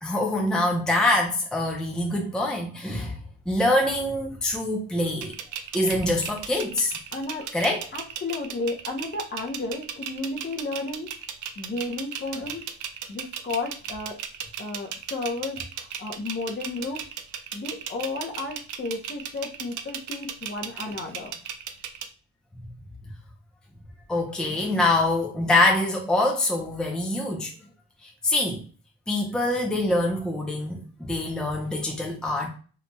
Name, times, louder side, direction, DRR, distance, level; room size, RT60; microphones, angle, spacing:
voice 1, 0.0-3.2 3.5-5.3 5.7-6.9 7.5-7.8 24.1-27.5 28.0-28.6 29.1-32.5, left 1 dB, 5° left, 0.6 m, -24 dB
sound 1, 5.2-22.1, right 9 dB, 80° right, 0.5 m, -36 dB
voice 2, 7.1-7.5 7.9-11.1 11.6-12.7 13.1-14.2 14.6-17.0 17.5-21.4, left 3 dB, 35° left, 0.8 m, -33 dB
2.9 x 2.7 x 2.2 m
cardioid pair, 90°, 30 cm